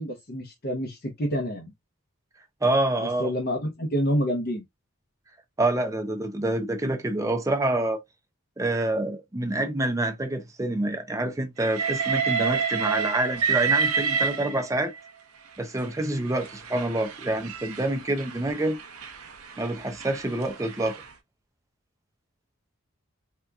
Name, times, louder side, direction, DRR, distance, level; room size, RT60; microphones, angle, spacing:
voice 1, 0.0-1.7 3.0-4.6, equal, 45° left, 0.7 m, -28 dB
voice 2, 2.6-3.3 5.6-8.0 8.6-14.9 15.6-18.8 19.6-21.0, right 1 dB, 15° right, 0.5 m, -27 dB
Train, 11.6-15.0 15.8-21.1, right 6 dB, 85° right, 0.7 m, -29 dB
3.5 x 2.8 x 2.3 m
head